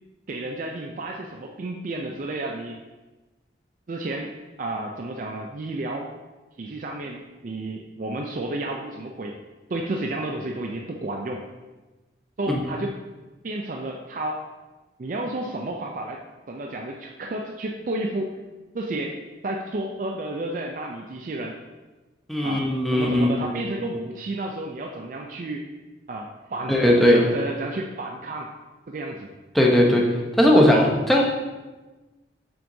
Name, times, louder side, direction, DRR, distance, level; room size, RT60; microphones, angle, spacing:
voice 1, 0.3-2.8 3.9-6.1 6.6-9.4 9.7-11.4 12.4-13.0 13.4-14.5 15.0-16.2 16.5-18.4 18.7-21.6 22.4-25.6 26.1-28.5 28.9-29.3 29.9-30.0, right 2 dB, 45° right, 1 dB, 0.4 m, -31 dB
voice 2, 22.3-23.5 26.7-27.2 29.5-30.0 30.4-31.2, left 1 dB, ahead, -2 dB, 0.8 m, -18 dB
6.9 x 5.8 x 2.7 m, 1.2 s
head